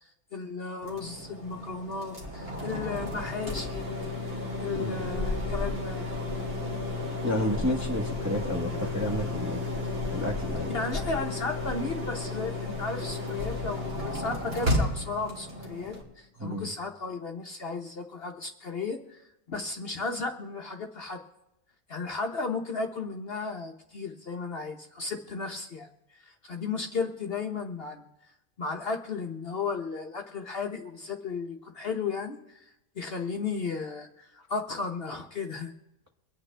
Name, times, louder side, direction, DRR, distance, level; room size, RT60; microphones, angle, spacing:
voice 1, 0.3-4.1 4.6-6.1 10.7-19.2 19.5-21.2 21.9-28.0 28.6-35.7, left 4 dB, 50° left, 3 dB, 1.0 m, -34 dB
sound 1, 0.8-16.0, left 2 dB, 45° right, 2.6 m, -33 dB
voice 2, 4.7-5.1 7.2-9.6 10.1-10.7 16.4-16.7, equal, 15° right, -1 dB, 1.1 m, -31 dB
24.0 x 9.0 x 3.3 m, 0.92 s
omnidirectional pair, 1.5 m